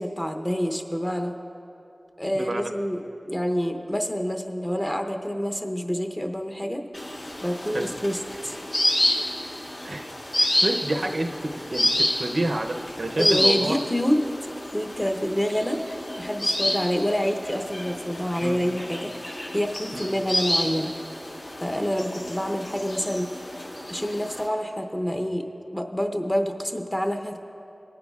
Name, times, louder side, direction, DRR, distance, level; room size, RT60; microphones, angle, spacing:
voice 1, 0.0-1.3 2.2-6.8 7.4-8.6 13.2-14.3 14.7-15.8 16.2-19.2 19.5-20.9 21.6-23.3 23.9-25.4 25.7-27.4, equal, 15° left, 4 dB, 0.7 m, -27 dB
voice 2, 2.3-2.7 7.7-7.9 9.8-10.1 10.3-13.8 18.4-18.6 19.9-20.1, right 1 dB, 65° right, 4 dB, 0.6 m, -29 dB
sound 1, 6.9-24.5, left 1 dB, 65° left, 2.0 m, -29 dB
20.0 x 9.5 x 2.4 m, 2.8 s
wide cardioid pair, 65°, 0 cm